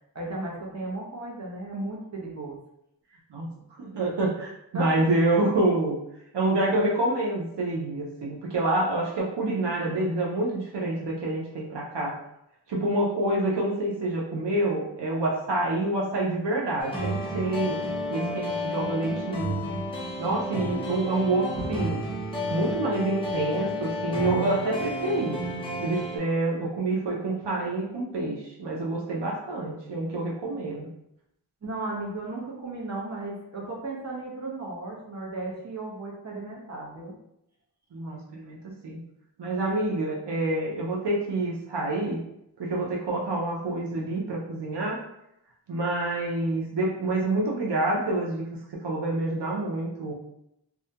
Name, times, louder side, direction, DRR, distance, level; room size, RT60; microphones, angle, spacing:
voice 1, 0.1-2.6 4.7-4.9 5.2-5.4 21.5-21.8 31.6-37.1, right 2 dB, 40° right, -3 dB, 0.8 m, -35 dB
voice 2, 3.3-6.0 6.3-12.2 12.7-17.8 18.1-19.7 20.2-22.0 22.5-25.4 25.8-30.9 37.9-38.6 38.8-39.0 39.4-42.2 42.6-45.0 45.7-48.4 48.7-50.1, right 2 dB, 85° right, -3 dB, 0.5 m, -27 dB
sound 1, 16.8-26.2, left 1 dB, 15° left, 0.7 m, -31 dB
2.3 x 2.1 x 2.7 m, 0.81 s
wide cardioid pair, 45°, 41 cm